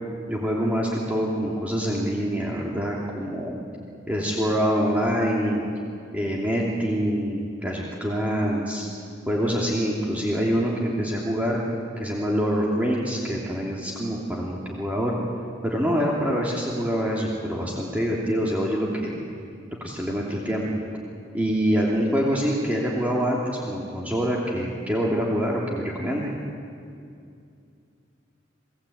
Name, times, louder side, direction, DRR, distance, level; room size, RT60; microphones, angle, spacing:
voice 1, 0.3-3.6 4.1-5.6 6.1-8.9 9.3-11.6 12.0-15.2 15.6-19.2 19.8-20.6 21.3-26.3, equal, 10° right, -4 dB, 2.9 m, -25 dB
29.5 x 19.5 x 8.7 m, 2.4 s
head